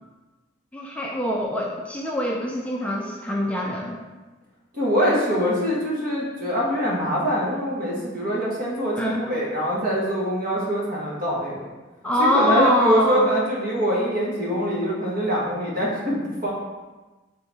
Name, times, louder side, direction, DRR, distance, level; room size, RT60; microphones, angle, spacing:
voice 1, 0.7-4.0 8.9-9.2 12.0-13.3, equal, 5° left, -2 dB, 0.4 m, -23 dB
voice 2, 4.7-11.6 12.2-16.5, equal, 50° right, -5 dB, 1.3 m, -24 dB
3.7 x 3.4 x 4.1 m, 1.2 s
head